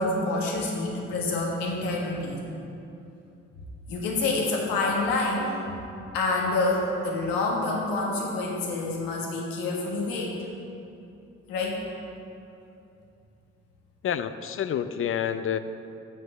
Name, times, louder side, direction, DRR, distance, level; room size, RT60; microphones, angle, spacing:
voice 1, 0.0-2.4 3.9-5.6 6.1-10.4 11.5-11.8, left 2 dB, 75° left, -2 dB, 1.6 m, -27 dB
voice 2, 14.0-15.6, left 9 dB, 40° left, 12 dB, 0.5 m, -28 dB
7.7 x 5.3 x 6.4 m, 2.7 s
hypercardioid pair, 45°, 34 cm